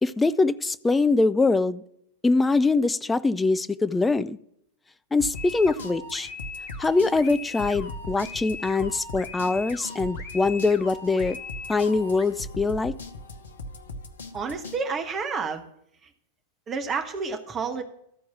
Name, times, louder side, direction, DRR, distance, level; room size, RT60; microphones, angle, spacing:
voice 1, 0.0-1.8 2.2-4.4 5.1-6.3 6.8-11.4 11.7-12.9, left 3 dB, 10° left, 14 dB, 0.4 m, -23 dB
sound 1, 5.2-14.8, left 1 dB, 65° left, 0.8 m, -40 dB
sound 2, 5.3-12.2, left 4 dB, 40° left, 1.4 m, -40 dB
voice 2, 14.3-15.7 16.0-16.1 16.7-17.8, right 5 dB, 25° right, 6 dB, 1.1 m, -30 dB
13.5 x 4.6 x 7.0 m, 0.73 s
figure-of-eight pair, 90°, 0 cm